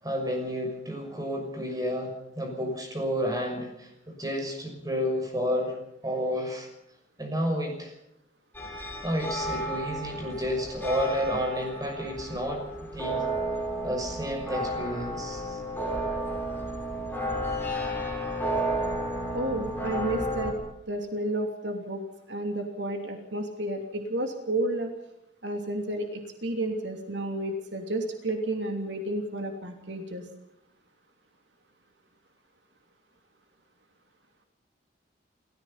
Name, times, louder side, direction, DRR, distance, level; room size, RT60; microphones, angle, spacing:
voice 1, 0.0-6.7 7.2-7.9 9.0-12.7 12.9-13.2 13.8-15.6, equal, 20° right, 3 dB, 6.4 m, -31 dB
sound 1, 8.5-20.5, right 1 dB, 10° left, 5.9 m, -32 dB
voice 2, 19.3-20.5 20.9-24.9 25.4-30.2, right 1 dB, 75° right, 4 dB, 3.0 m, -31 dB
28.5 x 15.5 x 5.8 m, 0.79 s
head